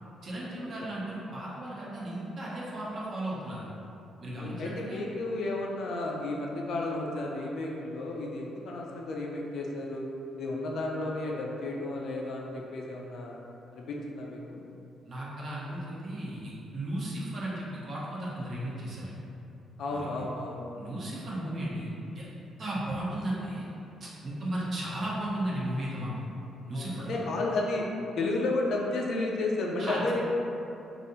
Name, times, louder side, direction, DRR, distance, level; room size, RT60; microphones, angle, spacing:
voice 1, 0.2-3.7 4.2-5.0 15.0-19.2 19.9-20.1 20.7-23.7 24.0-26.1 26.7-27.2 29.8-30.0, right 1 dB, 50° right, -6 dB, 0.8 m, -35 dB
voice 2, 4.4-10.1 10.4-13.4 13.7-14.6 19.8-20.6 26.7-27.9 28.2-30.2, left 2 dB, 70° left, -1 dB, 0.5 m, -32 dB
3.3 x 2.6 x 2.7 m, 2.8 s
cardioid pair, 90°, 0 cm